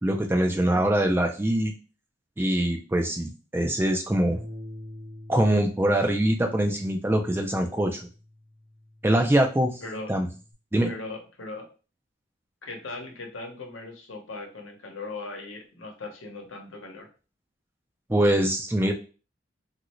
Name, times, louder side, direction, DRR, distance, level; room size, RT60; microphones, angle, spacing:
voice 1, 0.0-1.7 2.4-4.4 5.3-8.1 9.0-9.8 10.1-10.3 10.7-10.9 18.1-18.9, right 1 dB, 10° right, 3 dB, 0.3 m, -23 dB
voice 2, 0.6-0.9 9.8-10.1 10.8-11.7 12.6-17.1, left 3 dB, 85° left, 2 dB, 0.9 m, -39 dB
Bass guitar, 4.3-10.5, left 1 dB, 55° right, 1.0 m, -46 dB
3.1 x 2.5 x 2.9 m, 0.35 s
head